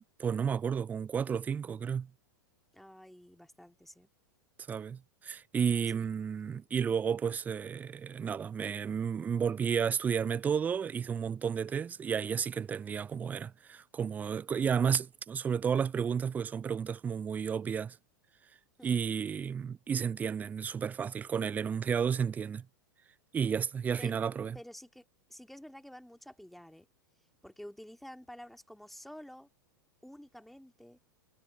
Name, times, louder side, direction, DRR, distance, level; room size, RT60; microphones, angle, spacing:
voice 1, 0.2-2.1 4.7-18.0 18.8-22.7 23.3-24.6, right 7 dB, 15° right, 0.3 m, -32 dB
voice 2, 2.7-4.1 5.9-6.1 18.8-19.0 24.0-24.2 24.5-26.9 27.4-29.5 30.0-31.0, equal, ahead, 2.1 m, -50 dB
figure-of-eight pair, 95°, 11 cm